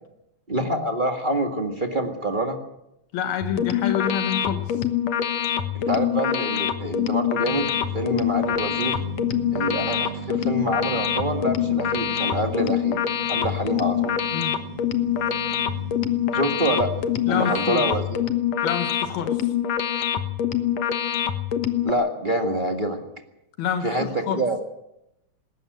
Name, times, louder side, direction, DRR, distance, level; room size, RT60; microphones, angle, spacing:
voice 1, 0.5-2.6 5.7-8.9 9.5-13.0 13.3-14.1 16.3-16.9 17.2-18.2 21.8-23.0 23.8-24.6, right 1 dB, 40° right, 3 dB, 0.7 m, -26 dB
voice 2, 3.1-4.8 14.3-14.6 17.3-17.8 18.6-19.5 23.6-24.4, left 8 dB, 85° left, 6 dB, 3.4 m, -27 dB
sound 1, 3.4-21.9, left 10 dB, 60° left, 1.9 m, -25 dB
sound 2, 7.5-18.0, right 8 dB, 70° right, 3.9 m, -38 dB
20.0 x 17.0 x 7.9 m, 0.87 s
omnidirectional pair, 4.2 m